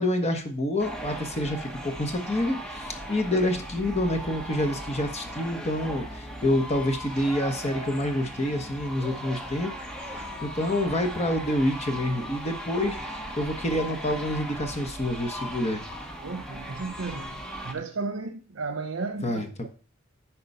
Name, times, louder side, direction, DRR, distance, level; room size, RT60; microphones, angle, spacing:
voice 1, 0.0-15.8 19.2-19.7, left 1 dB, 35° left, 1.3 m, -28 dB
sound 1, 0.8-17.7, equal, 5° left, 1.2 m, -38 dB
voice 2, 16.2-19.7, right 3 dB, 85° right, 0.7 m, -34 dB
11.0 x 4.3 x 5.6 m
head